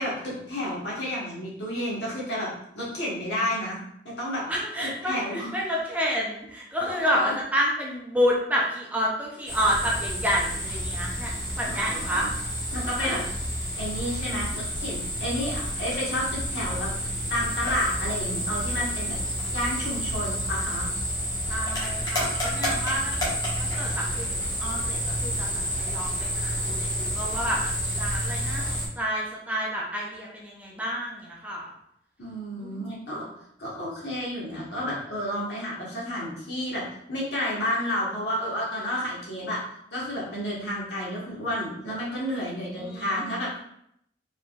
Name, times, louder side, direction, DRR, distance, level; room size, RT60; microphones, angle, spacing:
voice 1, 0.0-2.5 2.7-3.8 4.0-4.4 5.0-5.5 6.8-7.4 11.7-12.3 12.7-13.2 13.7-19.2 19.5-20.9 32.2-33.3 33.6-36.8 37.1-39.6 39.9-43.6, left 1 dB, 70° left, -6 dB, 1.9 m, -31 dB
voice 2, 4.5-12.3 13.0-13.2 21.5-23.2 23.6-24.3 24.6-31.7 32.6-32.9 42.8-43.3, equal, 10° right, -3 dB, 0.7 m, -29 dB
sound 1, 9.5-28.9, equal, 20° left, 1.6 m, -30 dB
4.8 x 4.0 x 2.6 m, 0.73 s
head